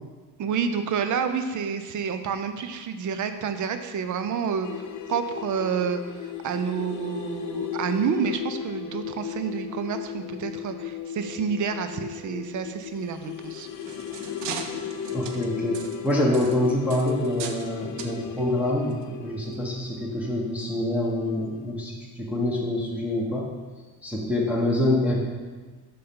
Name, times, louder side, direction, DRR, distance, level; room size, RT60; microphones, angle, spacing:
voice 1, 0.4-4.7 5.1-13.7, right 6 dB, 45° right, 8 dB, 0.6 m, -29 dB
sound 1, 4.6-21.3 21.6-21.7, left 9 dB, 45° left, 0.6 m, -36 dB
sound 2, 13.5-17.7 18.0-18.2 18.9-19.0 19.5-19.6, right 6 dB, 90° right, 0.7 m, -39 dB
voice 2, 15.1-15.8 16.0-23.5 24.0-25.2, left 1 dB, 5° right, -4 dB, 1.1 m, -26 dB
6.7 x 5.2 x 3.7 m, 1.4 s
cardioid pair, 95°, 41 cm